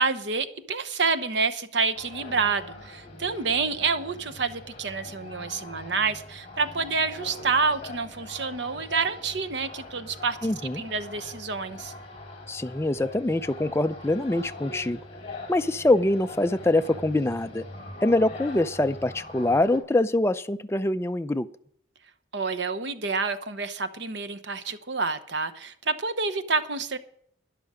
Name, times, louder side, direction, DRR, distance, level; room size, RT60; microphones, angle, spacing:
voice 1, 0.0-11.9 22.3-27.0, right 4 dB, 65° right, 10 dB, 0.9 m, -28 dB
sound 1, 1.9-19.8, left 2 dB, 30° left, 3.8 m, -42 dB
voice 2, 10.4-10.8 12.5-15.0 15.5-17.6 18.0-21.5, left 2 dB, 15° left, 10 dB, 0.4 m, -24 dB
13.0 x 11.0 x 5.1 m, 0.66 s
head